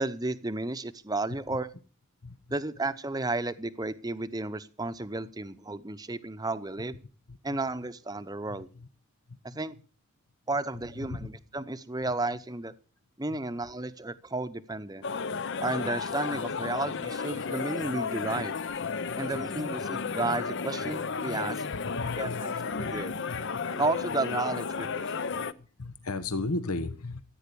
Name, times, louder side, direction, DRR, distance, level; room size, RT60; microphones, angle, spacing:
voice 1, 0.0-1.7 2.5-7.0 7.4-8.7 9.4-9.7 10.5-12.7 13.2-15.1 15.6-18.5 19.2-21.6 22.2-23.1 23.7-25.3, right 2 dB, 15° right, 14 dB, 0.7 m, -33 dB
voice 2, 2.2-2.6 7.3-7.6 8.5-8.9 9.3-9.6 11.1-11.2 13.3-13.4 19.1-19.2 22.0-22.9 23.3-23.5 25.6-27.2, left 2 dB, 85° left, 12 dB, 1.2 m, -36 dB
sound 1, 15.0-25.5, left 5 dB, 55° left, 0.6 m, -33 dB
15.0 x 9.4 x 6.9 m, 0.37 s
head